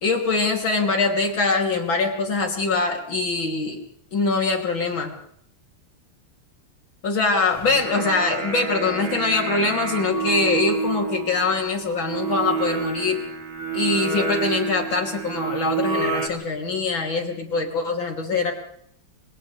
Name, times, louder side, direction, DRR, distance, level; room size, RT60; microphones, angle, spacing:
voice 1, 0.0-3.8 4.1-5.1 7.0-13.2 13.7-18.5, left 3 dB, 65° left, 2 dB, 3.9 m, -23 dB
Singing, 7.5-16.3, right 5 dB, 70° right, 3.7 m, -28 dB
29.5 x 27.0 x 3.4 m, 0.70 s
omnidirectional pair, 2.3 m